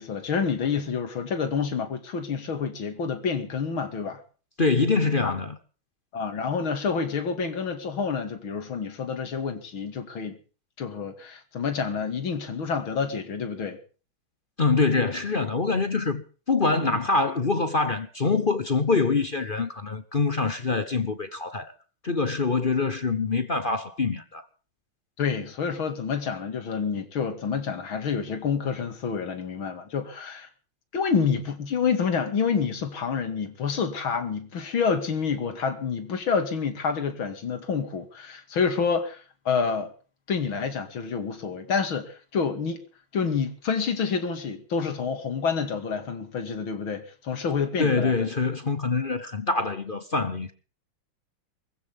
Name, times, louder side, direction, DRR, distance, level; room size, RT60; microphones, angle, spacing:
voice 1, 0.0-4.2 5.2-5.4 6.1-10.4 10.8-13.8 16.8-17.0 25.2-30.5 30.9-39.9 40.3-42.8 43.1-48.3, left 6 dB, 85° left, 3.1 m, -28 dB
voice 2, 4.6-5.6 14.6-21.7 22.0-24.4 47.8-50.5, left 4 dB, 35° left, 0.9 m, -25 dB
24.0 x 15.5 x 3.6 m
omnidirectional pair, 2.2 m